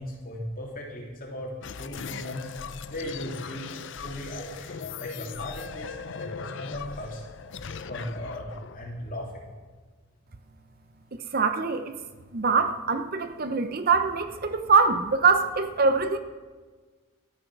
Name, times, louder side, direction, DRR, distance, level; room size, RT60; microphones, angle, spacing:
voice 1, 0.0-1.5 1.8-2.5 2.9-4.7 5.0-7.2 7.9-9.5, equal, 40° left, -2 dB, 3.0 m, -37 dB
sound 1, 1.6-9.8, left 6 dB, 60° left, 0.5 m, -39 dB
voice 2, 11.3-12.0 12.3-16.2, right 4 dB, 45° right, 9 dB, 0.7 m, -23 dB
13.0 x 9.4 x 6.1 m, 1.4 s
head